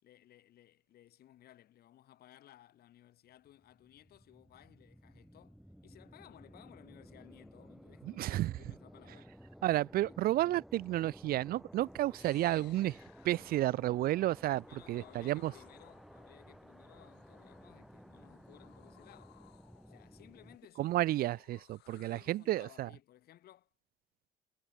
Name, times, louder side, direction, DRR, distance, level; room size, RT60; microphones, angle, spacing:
voice 1, 0.0-9.4 10.0-10.2 14.7-19.4 19.9-21.0 21.8-23.7, left 13 dB, 65° left, 5.2 m, -59 dB
sound 1, 3.5-20.6, equal, ahead, 2.7 m, -55 dB
voice 2, 8.2-8.5 9.6-13.0 13.2-15.5 20.8-22.9, right 15 dB, 65° right, 0.5 m, -31 dB
sound 2, 11.7-22.7, left 19 dB, 85° left, 2.8 m, -65 dB
cardioid pair, 110°, 17 cm